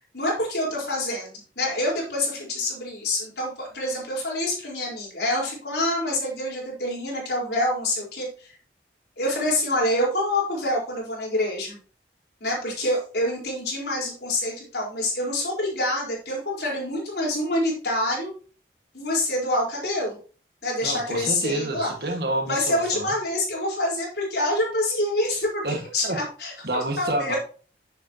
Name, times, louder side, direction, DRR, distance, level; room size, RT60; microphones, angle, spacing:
voice 1, 0.1-8.5 9.2-11.8 12.4-18.3 18.9-20.2 20.6-21.9 22.5-25.6 25.9-27.4, left 1 dB, 70° left, -3 dB, 4.5 m, -26 dB
voice 2, 20.8-23.1 25.6-26.2 26.6-27.3, right 2 dB, 65° right, 4 dB, 1.8 m, -29 dB
10.0 x 7.4 x 3.0 m, 0.39 s
head